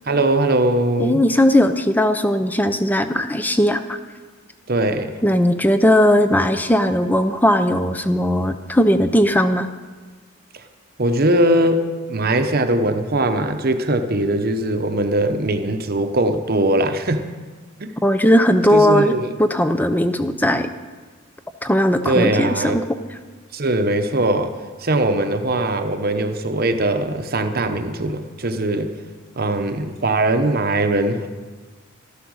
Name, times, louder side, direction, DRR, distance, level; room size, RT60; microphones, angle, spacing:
voice 1, 0.1-1.2 4.7-5.1 11.0-17.2 17.8-17.9 18.7-19.3 22.0-22.8 23.5-24.5 24.8-28.9 29.4-31.3, right 1 dB, 45° right, 7 dB, 0.9 m, -20 dB
voice 2, 1.0-4.0 5.2-9.7 18.0-20.7 21.6-22.8, equal, 10° left, 9 dB, 0.6 m, -18 dB
13.0 x 12.0 x 6.4 m, 1.4 s
head